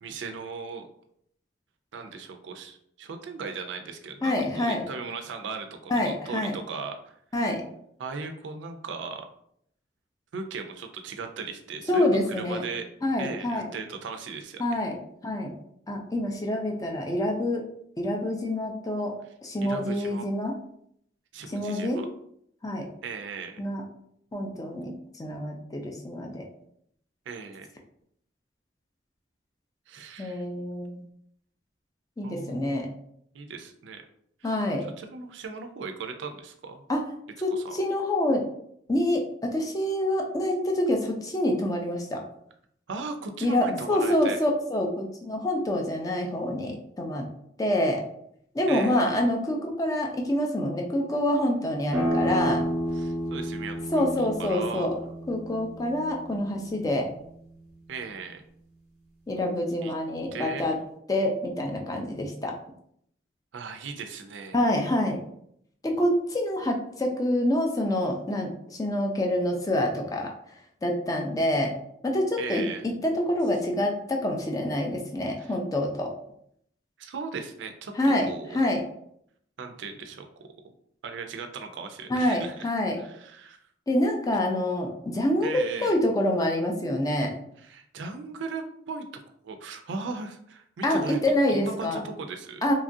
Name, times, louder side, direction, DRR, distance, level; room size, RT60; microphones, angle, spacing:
voice 1, 0.0-0.9 1.9-7.1 8.0-9.3 10.3-12.9 13.2-14.6 19.6-20.2 21.3-22.1 23.0-23.6 27.3-27.7 29.9-30.4 32.2-32.6 33.3-34.0 34.4-36.8 37.5-37.8 42.9-44.4 48.7-49.1 52.9-54.9 57.9-58.4 59.8-59.9 60.3-60.7 63.5-64.6 72.4-72.9 75.4-75.6 77.0-78.6 79.6-80.3 81.0-82.7 83.0-83.6 85.4-85.9 87.6-89.1 89.4-91.2 91.5-92.6, right 4 dB, 75° right, 5 dB, 0.4 m, -37 dB
voice 2, 4.2-4.9 5.9-6.5 7.3-7.6 11.9-12.6 13.0-13.7 14.6-14.9 15.2-15.5 15.9-17.6 18.0-19.1 19.4-20.5 21.5-22.0 22.6-22.9 23.6-23.8 24.3-26.5 30.2-31.0 32.2-32.9 34.4-34.9 36.9-37.0 37.4-38.4 38.9-42.2 43.4-47.3 47.6-48.0 48.5-52.6 53.9-54.9 55.3-57.1 59.3-60.8 61.1-62.5 64.5-65.2 65.8-68.5 68.8-70.3 70.8-71.7 72.0-72.6 73.0-76.1 78.0-78.8 82.1-83.0 83.9-85.5 85.8-87.3 90.8-92.0 92.6-92.7, left 1 dB, 20° left, 1 dB, 0.4 m, -26 dB
sound 1, 51.9-57.3, equal, 10° right, 0.9 m, -31 dB
2.9 x 2.4 x 2.6 m, 0.70 s
head